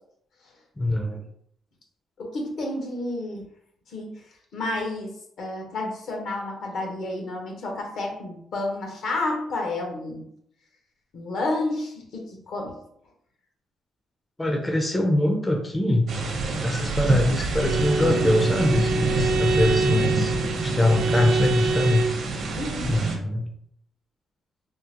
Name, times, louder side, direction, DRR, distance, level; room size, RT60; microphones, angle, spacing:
voice 1, 0.8-1.2 14.4-16.1 16.6-20.3 20.6-22.1 22.8-23.5, left 1 dB, 20° left, 3 dB, 0.4 m, -23 dB
voice 2, 2.2-3.4 3.9-4.2 4.5-10.3 11.1-12.8 19.7-20.2 22.6-23.0, left 2 dB, 70° left, 1 dB, 0.9 m, -31 dB
sound 1, 16.1-23.1, right 3 dB, 65° right, 0.7 m, -27 dB
Bowed string instrument, 17.6-22.3, right 3 dB, 80° right, 0.4 m, -26 dB
3.6 x 2.0 x 2.9 m, 0.70 s
cardioid pair, 90°, 0 cm